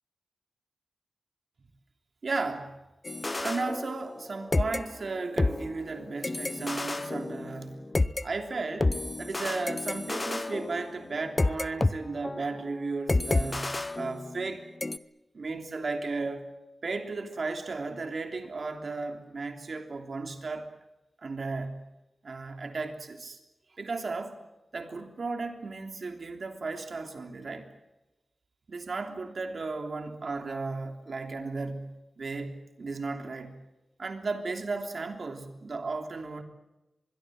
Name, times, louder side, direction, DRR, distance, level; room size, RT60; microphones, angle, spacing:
voice 1, 2.2-2.8 3.4-7.9 8.2-14.7 15.3-16.4 16.8-20.7 21.2-21.9 22.2-23.4 23.8-24.3 24.7-27.7 28.7-33.6 34.0-36.4, right 3 dB, 50° right, 5 dB, 3.3 m, -35 dB
sound 1, 3.0-4.3 4.5-8.2 8.8-11.9 12.2-12.5 13.1-14.5 14.8-15.0, left 2 dB, 25° left, 0.8 m, -30 dB
25.0 x 22.0 x 7.8 m, 1.0 s
wide cardioid pair, 125°, 0 cm